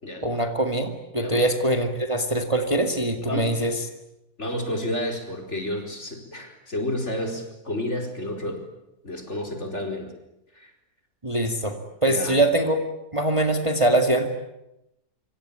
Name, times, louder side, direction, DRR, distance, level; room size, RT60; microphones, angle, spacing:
voice 1, 0.2-3.7 11.2-11.8 12.0-12.8 13.1-14.3, right 1 dB, 20° right, 5 dB, 2.1 m, -23 dB
voice 2, 4.4-8.6 9.0-10.1 10.5-10.7 12.0-12.4, left 1 dB, 45° left, 3 dB, 5.0 m, -30 dB
26.0 x 25.5 x 8.8 m, 0.88 s
omnidirectional pair, 1.7 m